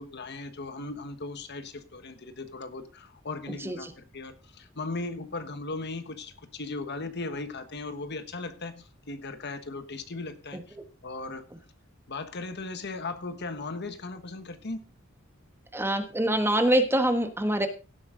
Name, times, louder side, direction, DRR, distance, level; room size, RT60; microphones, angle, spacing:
voice 1, 0.0-10.8 11.0-11.5 12.1-14.8, left 3 dB, 55° left, 1.3 m, -37 dB
voice 2, 15.7-17.7, right 1 dB, 10° right, 1.3 m, -24 dB
16.5 x 7.9 x 3.8 m
head